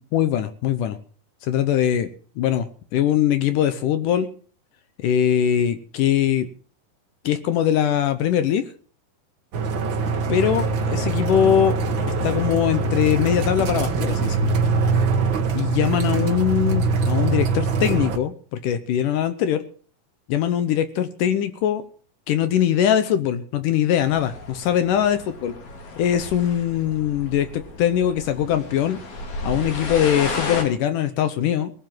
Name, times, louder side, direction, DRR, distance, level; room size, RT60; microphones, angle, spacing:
voice 1, 0.1-1.0 1.4-2.1 2.4-4.3 5.0-6.5 7.2-8.7 10.3-11.8 12.2-14.5 15.5-19.6 20.3-21.8 22.3-25.5 26.0-29.0 29.4-31.7, left 10 dB, 75° left, 11 dB, 2.3 m, -21 dB
sound 1, 9.5-18.2, right 4 dB, 65° right, 1.2 m, -23 dB
sound 2, 24.0-30.6, left 2 dB, 55° left, 3.9 m, -33 dB
19.5 x 7.4 x 7.7 m, 0.43 s
omnidirectional pair, 4.0 m